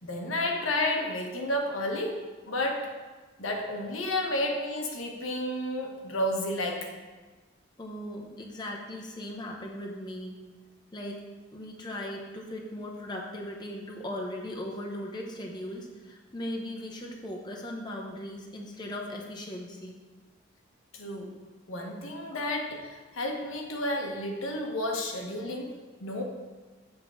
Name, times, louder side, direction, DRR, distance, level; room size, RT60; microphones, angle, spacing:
voice 1, 0.0-2.9 3.4-6.9 20.9-21.3 21.7-26.2, left 1 dB, 90° left, 1 dB, 1.2 m, -31 dB
voice 2, 7.8-10.4 10.9-11.2 11.5-20.0 22.3-22.5, left 1 dB, 20° left, -1 dB, 0.8 m, -38 dB
7.5 x 3.8 x 6.2 m, 1.3 s
head